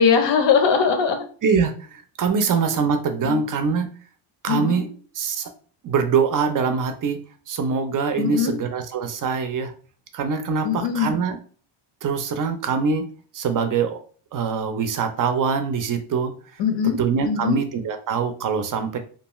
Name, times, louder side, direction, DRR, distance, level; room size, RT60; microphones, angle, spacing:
voice 1, 0.0-1.3 3.2-3.4 4.5-4.8 8.2-8.6 10.6-11.1 16.6-17.0 17.2-17.6, left 6 dB, 60° left, 7 dB, 0.6 m, -20 dB
voice 2, 1.4-3.9 4.4-4.9 5.1-5.5 5.8-7.2 7.5-9.7 10.1-11.4 12.0-13.1 13.3-14.0 14.3-16.3 16.8-19.0, right 5 dB, 45° right, 8 dB, 0.4 m, -23 dB
2.5 x 2.3 x 2.9 m, 0.42 s
cardioid pair, 130°, 49 cm